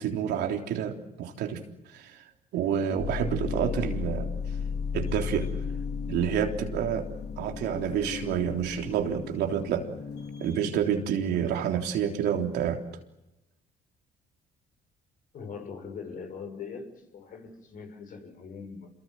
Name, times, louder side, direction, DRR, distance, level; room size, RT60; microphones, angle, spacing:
voice 1, 0.0-1.6 1.9-2.2 2.5-4.3 4.9-5.5 6.1-7.1 7.4-9.9 10.4-12.8, right 8 dB, 80° right, 3 dB, 3.6 m, -28 dB
sound 1, 3.0-10.7, left 6 dB, 75° left, 2.9 m, -35 dB
voice 2, 15.3-18.9, left 5 dB, 55° left, 7 dB, 6.4 m, -41 dB
28.5 x 23.0 x 7.7 m, 0.89 s
cardioid pair, 110°, 17 cm